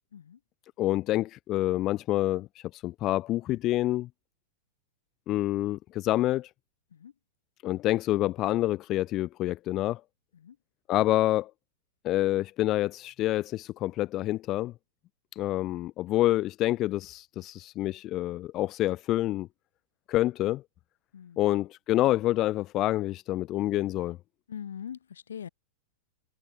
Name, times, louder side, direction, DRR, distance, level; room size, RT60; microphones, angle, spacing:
voice 1, 0.8-4.1 5.3-6.5 7.6-10.0 10.9-11.5 12.0-14.7 15.3-19.5 20.1-20.6 21.4-24.2, left 15 dB, 40° left, 1.4 m, -27 dB
voice 2, 21.1-21.5 24.5-25.5, left 8 dB, 80° left, 7.6 m, -42 dB
hypercardioid pair, 105°, 0 cm